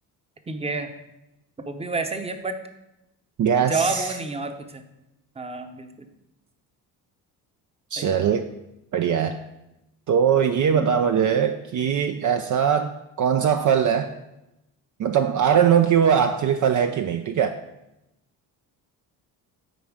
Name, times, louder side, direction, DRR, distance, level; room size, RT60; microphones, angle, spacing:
voice 1, 0.5-0.9 1.7-2.6 3.7-4.8 5.4-6.1 8.0-8.3 10.7-11.1 15.6-15.8, right 3 dB, 15° right, 7 dB, 0.8 m, -30 dB
voice 2, 3.4-4.1 7.9-8.5 8.9-9.4 10.1-14.1 15.0-17.6, right 8 dB, 45° right, 7 dB, 0.5 m, -21 dB
9.2 x 4.3 x 4.9 m, 0.91 s
cardioid pair, 85°, 41 cm